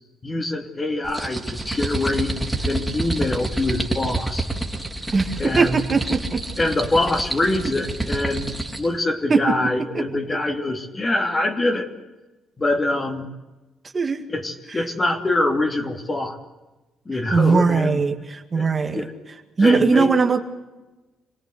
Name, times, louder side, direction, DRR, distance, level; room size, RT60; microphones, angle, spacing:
voice 1, 0.2-2.3 2.6-4.5 5.4-5.8 6.6-11.9 12.6-13.2 14.3-16.4 17.1-18.0 18.5-19.1 19.6-20.1, left 2 dB, 25° left, 5 dB, 2.8 m, -24 dB
sound 1, 1.0-8.9, right 2 dB, 5° right, 3.2 m, -28 dB
voice 2, 5.1-6.4 9.3-9.4 9.9-10.0 13.9-14.2 17.3-19.1 19.6-20.4, right 4 dB, 35° right, 6 dB, 2.0 m, -19 dB
26.5 x 18.5 x 8.0 m, 1.1 s
cardioid pair, 90°, 0 cm